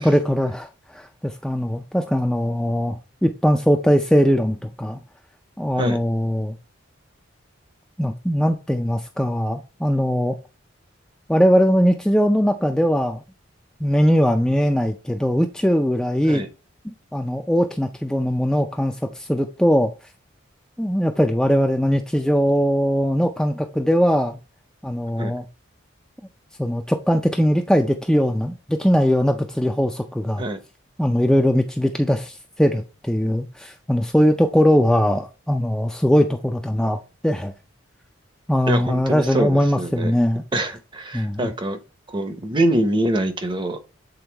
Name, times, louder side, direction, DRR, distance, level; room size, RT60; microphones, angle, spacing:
voice 1, 0.0-5.0 5.6-6.6 8.0-10.4 11.3-13.2 13.8-16.4 17.1-19.9 20.8-24.4 24.8-25.4 26.6-30.4 31.0-37.5 38.5-40.4 41.1-41.5, equal, 5° left, 0.4 m, -20 dB
voice 2, 38.7-40.1 40.5-41.8 42.1-43.8, right 1 dB, 25° right, 0.7 m, -24 dB
8.0 x 3.9 x 3.4 m
head